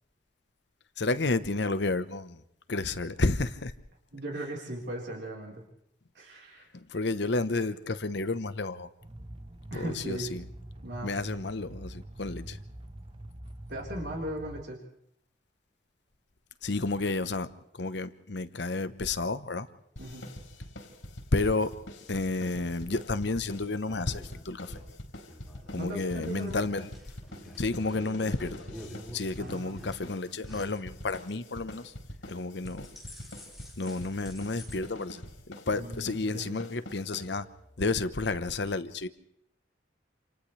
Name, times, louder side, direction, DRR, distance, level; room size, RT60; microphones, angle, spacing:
voice 1, 1.0-2.4 2.7-3.7 6.7-8.9 9.7-10.4 11.0-12.6 16.6-17.5 17.7-19.7 21.3-21.7 22.1-24.8 25.7-26.9 27.6-28.6 29.1-31.9 32.3-32.9 33.8-35.2 35.5-37.5 37.8-39.1, left 3 dB, 65° left, 1.0 m, -31 dB
voice 2, 4.1-5.6 6.1-6.7 9.7-10.3 10.8-11.2 13.7-14.8 20.0-20.3 25.8-26.6 29.4-29.7 35.7-36.6, right 1 dB, 65° right, 4.2 m, -38 dB
sound 1, 9.0-14.6, right 1 dB, 30° right, 1.0 m, -44 dB
sound 2, 20.0-37.7, left 1 dB, 85° left, 4.3 m, -45 dB
sound 3, 23.8-31.4 31.7-32.1 32.4-34.8, equal, ahead, 4.7 m, -49 dB
28.0 x 28.0 x 3.3 m
head